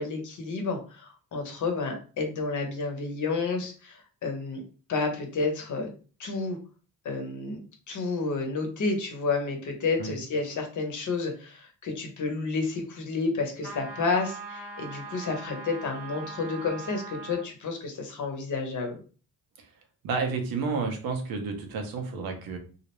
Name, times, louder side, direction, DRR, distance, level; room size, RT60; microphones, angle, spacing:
voice 1, 0.0-4.6 4.9-5.9 6.2-6.6 7.0-7.6 7.9-19.0, left 4 dB, 55° left, 3 dB, 0.8 m, -30 dB
sound 1, 13.6-17.5, right 4 dB, 40° right, 0.8 m, -41 dB
voice 2, 20.0-22.6, right 4 dB, 80° right, 4 dB, 0.7 m, -31 dB
2.4 x 2.0 x 3.0 m, 0.37 s
cardioid pair, 100°, 35 cm